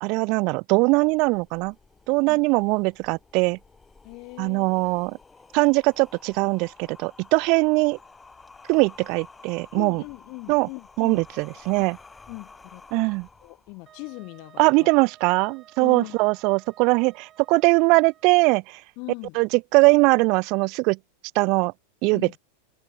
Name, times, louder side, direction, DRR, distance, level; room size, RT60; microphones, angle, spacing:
voice 1, 0.0-1.7 2.1-3.6 4.4-5.2 5.5-8.0 8.7-10.0 10.5-10.7 11.0-12.0 12.9-13.3 14.6-18.8 19.3-21.0 21.3-21.7 22.0-22.4, right 28 dB, 50° right, 0.7 m, -21 dB
sound 1, 1.0-14.0, left 4 dB, 10° left, 7.7 m, -51 dB
voice 2, 4.0-4.9 9.7-11.2 11.8-11.9 12.3-12.8 13.4-14.9 15.8-16.2 19.0-19.4 22.1-22.4, left 30 dB, 50° left, 5.8 m, -40 dB
Wind instrument woodwind instrument, 13.9-18.5, right 11 dB, 30° right, 5.6 m, -54 dB
hypercardioid pair, 125°, 0 cm